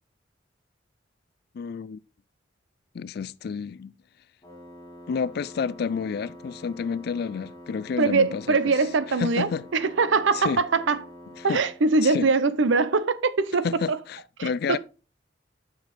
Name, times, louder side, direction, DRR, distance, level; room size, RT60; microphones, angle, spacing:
voice 1, 1.5-2.0 2.9-3.9 5.1-8.8 9.2-9.7 10.3-10.6 11.4-11.6 12.0-12.3 13.6-14.8, left 6 dB, 55° left, 0.3 m, -30 dB
Wind instrument woodwind instrument, 4.4-11.8, equal, 20° left, 3.5 m, -46 dB
voice 2, 8.0-11.0 11.4-14.0 14.4-14.8, right 4 dB, 75° right, 0.6 m, -23 dB
6.9 x 5.9 x 4.3 m
head